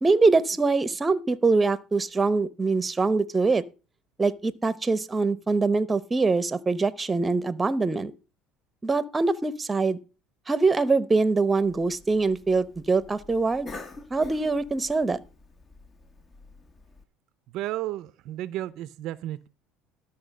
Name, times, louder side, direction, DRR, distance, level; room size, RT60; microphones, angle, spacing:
voice 1, 0.0-3.6 4.2-8.1 8.8-10.0 10.5-13.7 14.1-15.2, right 3 dB, 20° right, 0.9 m, -23 dB
Cough, 11.6-17.0, left 3 dB, 35° left, 1.6 m, -47 dB
voice 2, 17.5-19.5, right 14 dB, 65° right, 0.5 m, -33 dB
12.0 x 5.6 x 6.5 m
supercardioid pair, 85°, 0 cm